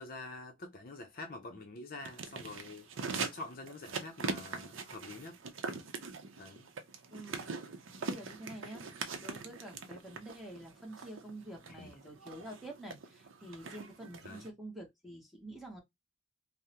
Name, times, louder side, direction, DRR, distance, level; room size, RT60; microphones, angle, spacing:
voice 1, 0.0-2.9 3.1-5.4 6.4-6.7 11.7-11.9 14.2-14.5, left 2 dB, 45° left, 0.5 m, -46 dB
sound 1, 2.0-14.5, right 4 dB, 70° right, 0.6 m, -42 dB
voice 2, 7.1-7.6 8.0-8.8 9.2-15.8, right 1 dB, ahead, 0.9 m, -48 dB
3.4 x 2.0 x 2.8 m
head